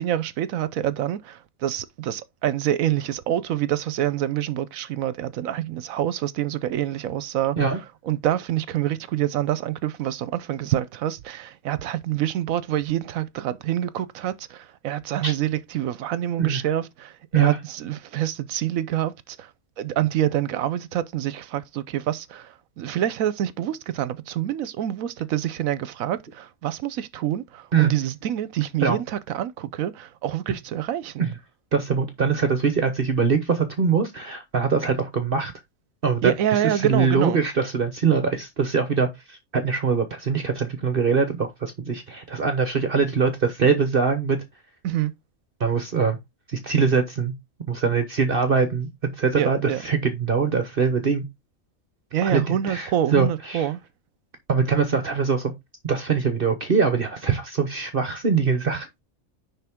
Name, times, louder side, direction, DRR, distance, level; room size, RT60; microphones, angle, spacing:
voice 1, 0.0-7.6 8.1-19.1 19.4-19.5 19.8-31.2 36.2-37.4 44.8-45.1 49.4-49.8 52.1-53.8, right 11 dB, 75° right, 1.1 m, -26 dB
voice 2, 31.7-35.5 36.0-36.3 36.7-44.4 45.6-46.2 46.5-47.3 47.7-48.9 49.2-51.2 52.2-53.7 54.5-55.5 55.8-59.0, right 5 dB, 45° right, 1.1 m, -23 dB
10.0 x 3.8 x 3.6 m
omnidirectional pair, 1.5 m